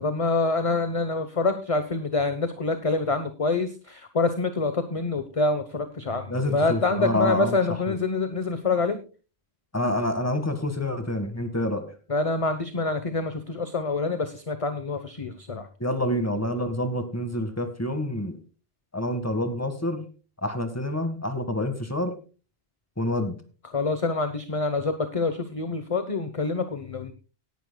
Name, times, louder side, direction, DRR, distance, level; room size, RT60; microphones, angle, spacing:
voice 1, 0.0-9.0 12.1-15.7 23.7-27.1, left 3 dB, 35° left, 9 dB, 1.0 m, -26 dB
voice 2, 6.3-7.5 7.9-8.0 9.7-11.8 15.8-18.4 18.9-20.1 20.4-22.2 23.0-23.4, left 1 dB, 15° left, 8 dB, 1.7 m, -27 dB
18.0 x 11.0 x 2.3 m, 0.35 s
omnidirectional pair, 1.1 m